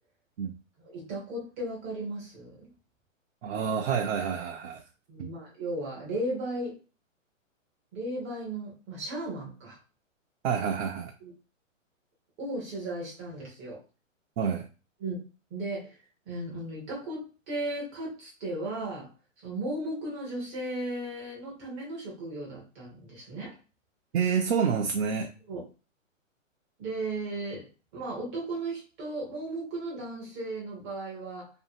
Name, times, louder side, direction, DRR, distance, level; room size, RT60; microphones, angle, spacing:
voice 1, 0.8-2.6 5.1-6.8 7.9-9.8 11.2-11.3 12.4-13.8 15.0-15.2 15.5-15.9 16.3-19.1 19.4-23.5 25.5-25.6 26.8-27.6 27.9-31.5, right 1 dB, 10° right, -4 dB, 0.4 m, -35 dB
voice 2, 3.4-4.8 5.2-5.3 10.4-11.1 14.4-14.7 24.1-25.3, right 6 dB, 60° right, 3 dB, 0.5 m, -28 dB
2.6 x 2.5 x 2.6 m, 0.33 s
hypercardioid pair, 145°, 39 cm